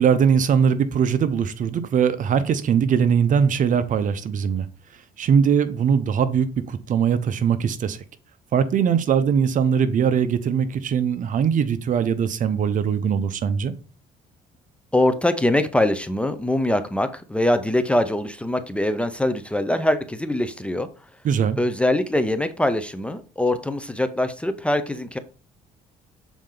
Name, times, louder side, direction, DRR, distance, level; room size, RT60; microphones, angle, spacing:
voice 1, 0.0-4.7 5.2-8.0 8.5-13.7 21.2-21.6, right 7 dB, 50° right, 0.7 m, -21 dB
voice 2, 14.9-20.9 21.6-25.2, left 1 dB, 5° left, 0.6 m, -23 dB
7.2 x 4.3 x 3.8 m
cardioid pair, 110°, 17 cm